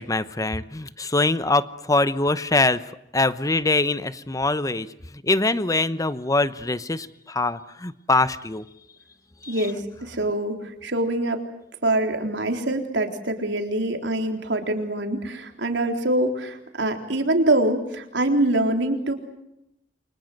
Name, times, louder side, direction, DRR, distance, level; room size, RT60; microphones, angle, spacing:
voice 1, 0.0-2.8 3.1-4.9 5.2-8.6 9.4-9.5, left 2 dB, 20° left, 14 dB, 1.0 m, -23 dB
voice 2, 9.5-11.4 11.8-19.1, right 1 dB, 80° right, 4 dB, 3.8 m, -24 dB
29.5 x 24.5 x 8.0 m, 0.82 s
head